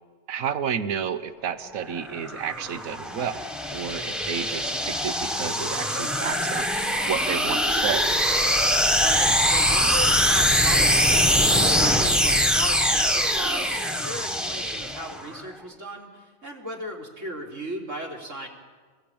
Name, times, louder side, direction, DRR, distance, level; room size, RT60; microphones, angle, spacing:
voice 1, 0.3-3.4 3.7-6.6 7.1-8.1, right 8 dB, 80° right, 12 dB, 1.4 m, -31 dB
sound 1, 1.9-15.4, equal, ahead, 1.4 m, -23 dB
voice 2, 9.0-18.5, right 2 dB, 65° right, 0 dB, 4.1 m, -36 dB
26.5 x 21.0 x 8.7 m, 1.5 s
omnidirectional pair, 1.4 m